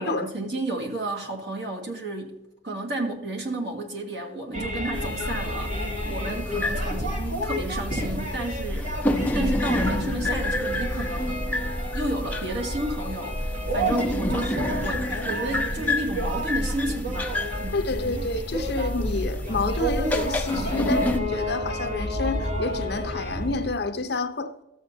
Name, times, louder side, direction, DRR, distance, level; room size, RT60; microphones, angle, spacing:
voice 1, 0.0-2.4 2.6-11.5 11.9-17.8, right 1 dB, 60° right, 1.7 m, -32 dB
sound 1, 4.5-23.7, equal, 40° right, 2.0 m, -31 dB
sound 2, 4.9-21.2, left 1 dB, 10° left, 0.5 m, -30 dB
voice 2, 17.7-24.6, left 3 dB, 55° left, 0.7 m, -29 dB
13.5 x 7.6 x 2.7 m
head